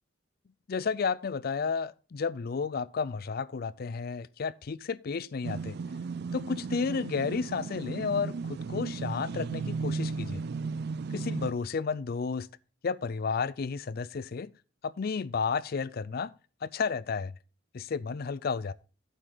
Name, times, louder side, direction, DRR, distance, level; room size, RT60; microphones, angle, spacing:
voice 1, 0.7-5.8 6.3-10.4 11.1-12.5 12.8-14.5 14.8-16.3 16.6-17.3 17.7-18.7, left 5 dB, 50° left, 0.4 m, -32 dB
sound 1, 5.4-11.5, right 4 dB, 55° right, 0.4 m, -35 dB
9.1 x 7.9 x 3.9 m
head